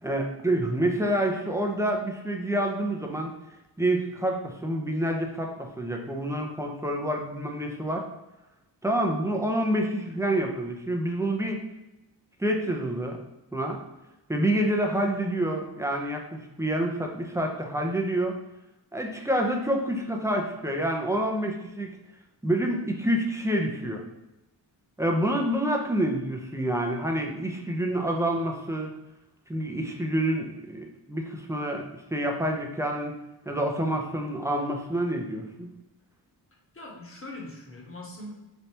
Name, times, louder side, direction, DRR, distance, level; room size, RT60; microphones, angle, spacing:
voice 1, 0.0-3.3 3.8-8.1 8.8-11.6 12.4-13.2 13.5-13.8 14.3-18.4 18.9-21.9 22.4-24.0 25.0-28.9 29.5-31.8 32.1-33.2 33.5-35.7, right 1 dB, 5° right, 1 dB, 0.6 m, -27 dB
voice 2, 36.7-38.3, left 1 dB, 30° left, -2 dB, 1.2 m, -41 dB
4.0 x 3.4 x 2.8 m, 0.96 s
wide cardioid pair, 95°, 44 cm